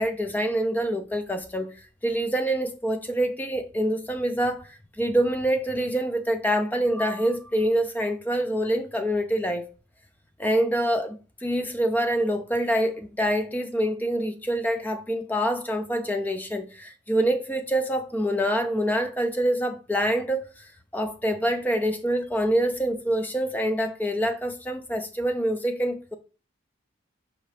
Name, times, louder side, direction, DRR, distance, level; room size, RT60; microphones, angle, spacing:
voice 1, 0.0-1.8 2.0-9.7 10.4-26.1, right 1 dB, 10° left, 0.4 m, -26 dB
4.9 x 2.7 x 3.2 m
head